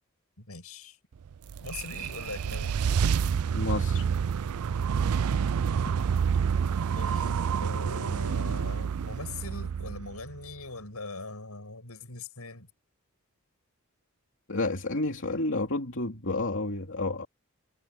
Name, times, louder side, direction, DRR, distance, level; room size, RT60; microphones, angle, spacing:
voice 1, 0.4-1.0 1.6-2.8 7.0-12.7, left 3 dB, 85° left, 7.1 m, -41 dB
sound 1, 1.3-10.5, right 7 dB, 85° right, 0.4 m, -28 dB
voice 2, 3.5-4.1 14.5-17.3, left 2 dB, 60° left, 3.1 m, -30 dB
head